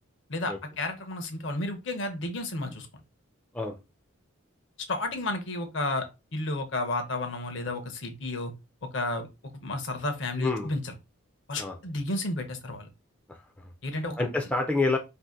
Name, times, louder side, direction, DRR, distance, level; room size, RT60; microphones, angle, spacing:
voice 1, 0.3-2.9 4.9-6.0 6.3-8.5 8.8-9.3 9.5-10.9 11.5-12.9 13.8-14.2, left 2 dB, 55° left, 6 dB, 0.7 m, -32 dB
voice 2, 10.4-10.7 11.6-11.8 13.3-13.7 14.2-15.0, left 3 dB, 5° left, 2 dB, 0.3 m, -28 dB
2.7 x 2.5 x 3.6 m, 0.26 s
head